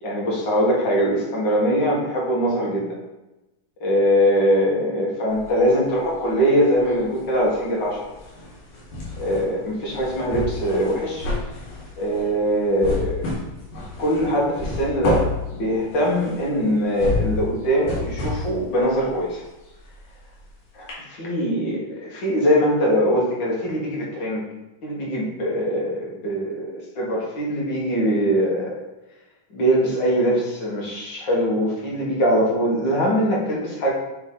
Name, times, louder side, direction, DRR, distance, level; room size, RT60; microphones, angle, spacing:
voice 1, 0.0-3.0 3.8-8.0 9.2-11.3 12.0-13.3 14.0-19.4 20.7-24.4 24.8-28.8 29.5-33.9, equal, 45° left, -4 dB, 1.7 m, -22 dB
sound 1, 5.3-6.4 6.7-20.5 20.9-21.0, left 3 dB, 80° left, 3.4 m, -31 dB
7.9 x 3.9 x 3.9 m, 0.99 s
omnidirectional pair, 3.8 m